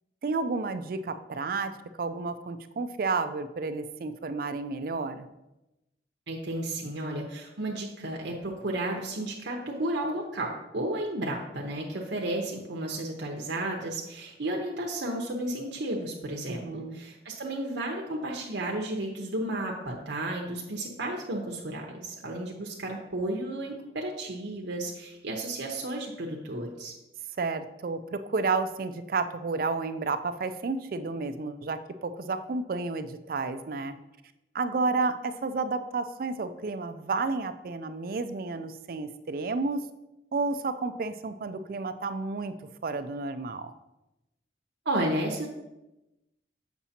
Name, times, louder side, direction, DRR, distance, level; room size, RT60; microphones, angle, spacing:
voice 1, 0.2-1.7 2.0-5.3 16.5-17.0 27.4-33.9 34.5-39.8 40.3-42.5 42.8-43.7, right 3 dB, 55° right, 10 dB, 0.4 m, -31 dB
voice 2, 6.3-26.9 44.8-45.5, right 1 dB, 85° right, -1 dB, 0.8 m, -33 dB
7.1 x 6.0 x 2.8 m, 0.95 s
head